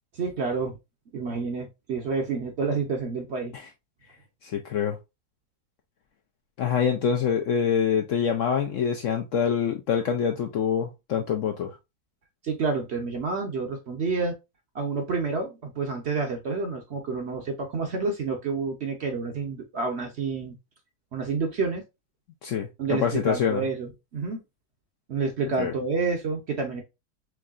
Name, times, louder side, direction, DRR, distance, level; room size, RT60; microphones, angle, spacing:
voice 1, 0.1-0.8 1.1-3.5 12.4-14.3 14.7-20.5 21.1-21.8 22.8-24.4 25.1-26.8, right 4 dB, 50° right, 0.9 m, -29 dB
voice 2, 4.4-5.0 6.6-11.7 22.4-23.6 25.6-25.7, left 7 dB, 70° left, 0.8 m, -25 dB
4.6 x 3.1 x 2.4 m
omnidirectional pair, 1.7 m